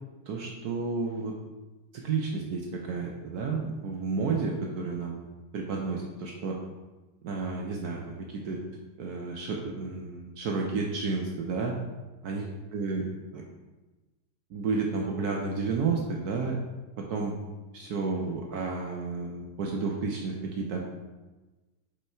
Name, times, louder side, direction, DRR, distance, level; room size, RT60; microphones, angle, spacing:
voice 1, 0.3-1.3 1.9-5.2 5.5-6.6 7.2-8.6 9.0-11.7 12.2-12.5 12.7-13.1 13.3-13.4 14.5-16.6 17.0-17.3 17.7-20.8, right 4 dB, 65° right, 0 dB, 1.1 m, -31 dB
5.4 x 4.6 x 4.4 m, 1.1 s
omnidirectional pair, 1.9 m